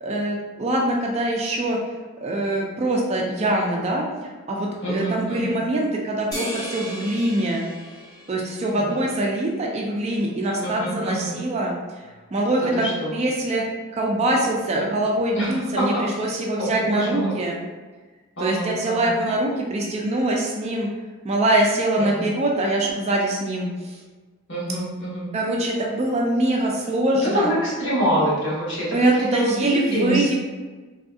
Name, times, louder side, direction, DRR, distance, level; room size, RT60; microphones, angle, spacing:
voice 1, 0.0-1.8 2.2-7.6 8.3-11.7 12.3-13.6 13.9-17.6 18.4-20.9 21.2-24.0 25.3-27.5 28.9-30.3, right 1 dB, 30° right, -1 dB, 0.3 m, -23 dB
voice 2, 4.8-5.6 8.7-8.9 10.6-11.3 12.6-13.2 15.3-16.0 16.6-17.3 18.4-19.1 22.0-22.3 24.5-25.3 27.2-30.4, right 1 dB, 55° left, -7 dB, 1.2 m, -26 dB
sound 1, 6.3-9.0, equal, 15° left, 0.8 m, -36 dB
3.4 x 2.6 x 2.3 m, 1.3 s
head